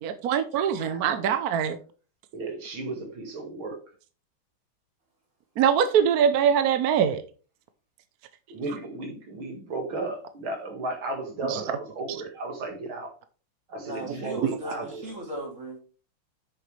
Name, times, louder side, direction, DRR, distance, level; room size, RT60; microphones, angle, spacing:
voice 1, 0.0-1.8 5.6-7.2 11.5-11.6 12.1-12.2 14.4-14.6, right 8 dB, 65° right, 1.0 m, -23 dB
voice 2, 0.7-1.3 2.3-3.8 8.5-13.1 13.7-15.1, right 2 dB, 85° right, 2.7 m, -34 dB
voice 3, 13.8-15.8, right 2 dB, 40° right, 3.3 m, -37 dB
8.7 x 6.7 x 3.3 m
omnidirectional pair, 2.2 m